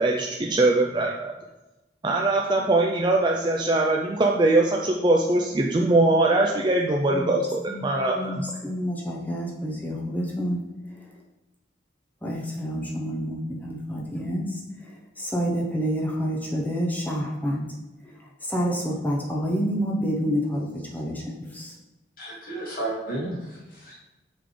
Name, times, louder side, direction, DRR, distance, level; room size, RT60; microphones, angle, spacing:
voice 1, 0.0-1.3 2.0-8.3, right 2 dB, 25° right, -1 dB, 0.4 m, -22 dB
voice 2, 7.1-7.4 7.7-10.6 10.9-11.2 12.2-17.7 18.0-21.8, equal, 10° left, -1 dB, 0.8 m, -29 dB
voice 3, 22.2-24.0, right 2 dB, 50° left, -5 dB, 2.1 m, -33 dB
5.8 x 3.3 x 5.0 m, 1.0 s
head